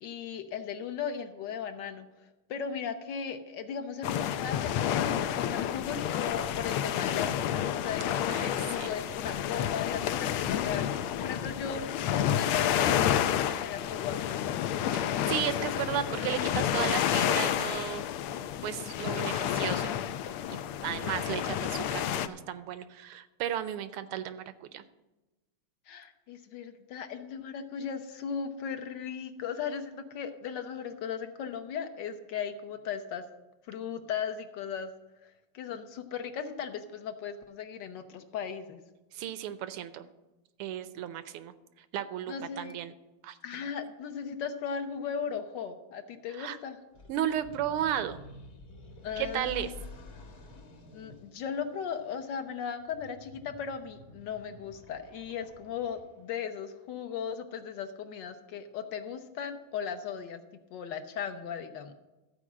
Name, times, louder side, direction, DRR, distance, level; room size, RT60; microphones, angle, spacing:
voice 1, 0.0-2.1 2.5-10.9 11.2-14.4 25.9-33.2 33.7-34.9 35.5-38.8 42.3-42.8 43.4-46.8 49.0-49.7 50.9-60.4 60.7-61.9, left 7 dB, 65° left, 8 dB, 1.3 m, -37 dB
sound 1, 4.0-22.3, left 10 dB, 85° left, 1.5 m, -30 dB
voice 2, 8.3-8.9 15.3-18.0 18.6-20.0 20.5-24.8 39.1-40.1 40.6-41.5 41.9-42.9 43.2-43.6 46.3-46.6 47.1-48.2 49.2-49.7, right 10 dB, 85° right, 12 dB, 1.6 m, -34 dB
sound 2, 46.9-56.5, left 2 dB, 45° left, 1.5 m, -50 dB
14.0 x 4.9 x 7.3 m, 1.1 s
omnidirectional pair, 2.4 m